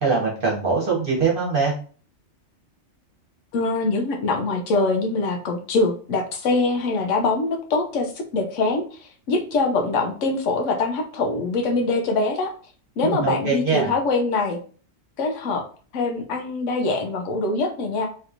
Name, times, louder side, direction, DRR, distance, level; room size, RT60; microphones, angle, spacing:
voice 1, 0.0-1.7 13.0-13.9, right 4 dB, 45° right, -3 dB, 1.2 m, -22 dB
voice 2, 3.5-12.5 13.0-14.6 15.2-15.6 15.9-18.1, left 3 dB, 80° left, 4 dB, 1.0 m, -23 dB
3.2 x 3.0 x 2.5 m, 0.40 s
omnidirectional pair, 1.3 m